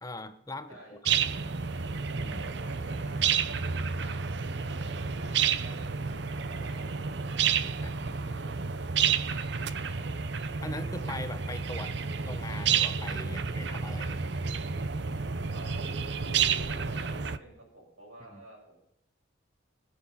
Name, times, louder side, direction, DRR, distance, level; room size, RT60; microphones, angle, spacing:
voice 1, 0.0-1.0 2.1-2.5 7.8-7.9 10.6-12.0 12.2-14.6 18.3-18.4, left 2 dB, 15° left, 10 dB, 0.8 m, -41 dB
voice 2, 0.7-1.3 2.3-7.3 15.5-18.8, right 1 dB, 90° right, -1 dB, 6.9 m, -50 dB
sound 1, 1.1-17.4, right 6 dB, 55° right, 0.7 m, -30 dB
24.0 x 9.1 x 5.7 m, 0.82 s
head